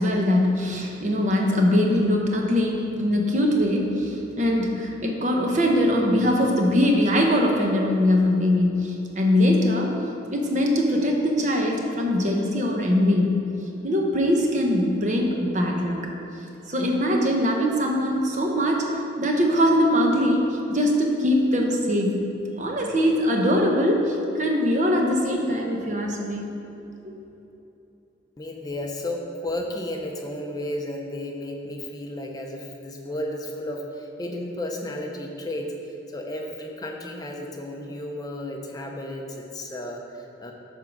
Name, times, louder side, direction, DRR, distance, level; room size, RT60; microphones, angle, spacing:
voice 1, 0.0-9.9 10.3-13.3 13.8-16.0 16.7-22.2 22.6-26.5 27.0-27.1, left 1 dB, 35° right, 1 dB, 0.9 m, -22 dB
voice 2, 28.4-40.5, left 1 dB, 20° left, 1 dB, 0.6 m, -33 dB
8.9 x 3.7 x 6.0 m, 2.9 s
head